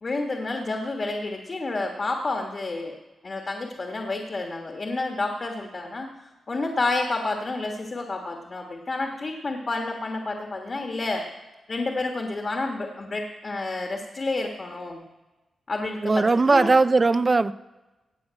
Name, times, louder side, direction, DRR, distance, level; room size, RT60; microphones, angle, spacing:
voice 1, 0.0-2.9 3.2-6.1 6.5-11.2 11.7-15.0 15.7-16.7, left 2 dB, 35° left, 2 dB, 1.4 m, -29 dB
voice 2, 16.0-17.5, right 3 dB, 25° right, 15 dB, 0.4 m, -19 dB
16.5 x 5.7 x 8.8 m, 1.1 s
wide cardioid pair, 145°, 0 cm